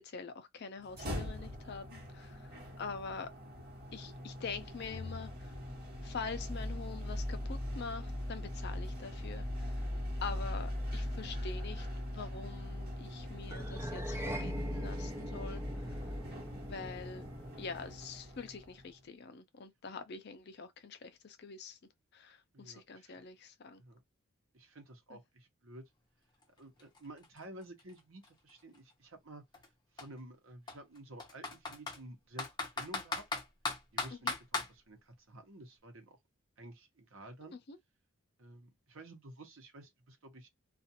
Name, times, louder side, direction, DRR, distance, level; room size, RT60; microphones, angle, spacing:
voice 1, 0.0-2.5 2.8-3.3 3.9-5.5 6.0-9.7 10.2-15.9 16.7-17.2 17.6-21.8 22.1-23.8 25.1-25.2 34.2-34.3 37.7-37.8, left 5 dB, 50° left, 0.5 m, -45 dB
sound 1, 0.8-18.9, left 1 dB, 45° right, 1.4 m, -40 dB
sound 2, 13.5-18.0, right 1 dB, 10° right, 0.4 m, -43 dB
voice 2, 22.5-23.1 23.8-24.0 24.5-25.8 26.6-29.4 29.9-33.4 33.9-36.2 36.6-37.6 38.4-40.5, right 1 dB, 70° right, 0.9 m, -52 dB
Computer keyboard, 26.4-26.5 26.8-28.8 29.5-29.7 30.0-30.1 30.7-32.0 32.4-34.7, left 3 dB, 20° left, 0.8 m, -38 dB
2.5 x 2.4 x 2.8 m
head